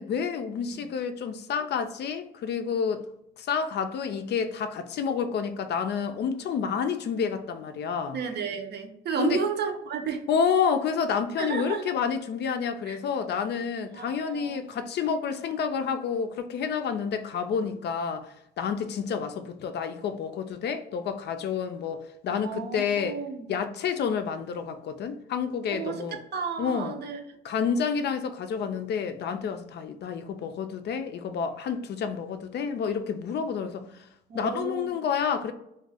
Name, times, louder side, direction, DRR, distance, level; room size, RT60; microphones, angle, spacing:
voice 1, 0.0-3.0 3.4-8.2 9.2-9.4 10.3-23.2 23.5-26.2 26.6-27.0 27.4-34.1 34.3-35.5, left 6 dB, 60° left, 0.4 m, -29 dB
voice 2, 8.1-10.2 11.4-11.9 12.9-13.0 13.9-14.6 22.3-23.5 25.7-27.2 34.3-34.9, right 6 dB, 55° right, 0.6 m, -32 dB
2.5 x 2.3 x 3.3 m
cardioid pair, 90°, 20 cm